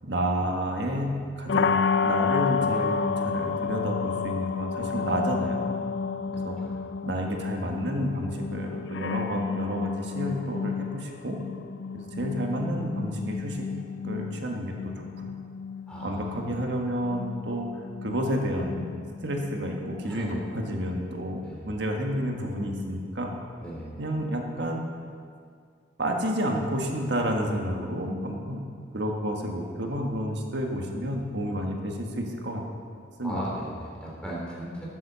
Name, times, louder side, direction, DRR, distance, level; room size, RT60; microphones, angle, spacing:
voice 1, 0.0-5.7 6.3-6.6 7.0-11.4 11.9-13.6 14.0-15.4 16.0-18.9 19.2-23.3 24.0-24.8 26.0-28.6 28.9-32.6 33.2-33.4, equal, 65° right, 1 dB, 1.6 m, -30 dB
sound 1, 1.5-21.3, left 5 dB, 65° left, 0.4 m, -31 dB
voice 2, 15.9-16.5 20.0-20.3 21.4-21.7 23.6-23.9 33.2-34.9, equal, 5° left, -5 dB, 3.0 m, -37 dB
13.5 x 7.6 x 6.9 m, 2.2 s
head